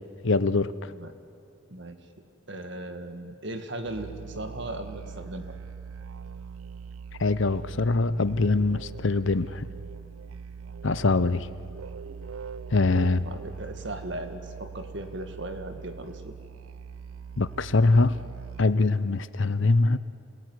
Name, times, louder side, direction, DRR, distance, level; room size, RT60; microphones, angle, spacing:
voice 1, 0.2-0.7 7.2-9.6 10.8-11.5 12.7-13.2 17.4-18.2 18.6-20.0, left 3 dB, 60° left, 15 dB, 0.7 m, -23 dB
voice 2, 2.5-5.5 12.8-16.3, right 1 dB, 55° right, 7 dB, 2.0 m, -37 dB
Musical instrument, 3.8-18.9, right 6 dB, 75° right, 0.5 m, -42 dB
27.5 x 20.0 x 9.5 m, 2.5 s
head